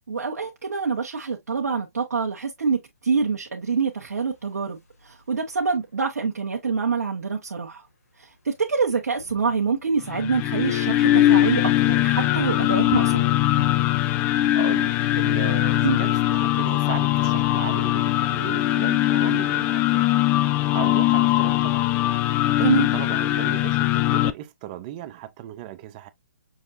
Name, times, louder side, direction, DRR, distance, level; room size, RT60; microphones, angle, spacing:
voice 1, 0.1-4.8 5.1-7.8 8.4-13.2 15.8-16.0 22.6-22.9, right 5 dB, 80° right, 1.2 m, -25 dB
sound 1, 4.0-5.5 6.8-6.9 7.1-7.3 7.6-19.7, left 2 dB, 75° left, 2.3 m, -45 dB
sound 2, 10.0-24.3, left 15 dB, 20° left, 0.4 m, -21 dB
voice 2, 14.5-20.1 20.7-21.8 22.2-26.1, right 13 dB, 30° right, 0.7 m, -36 dB
6.3 x 3.2 x 2.6 m
hypercardioid pair, 140°, 8 cm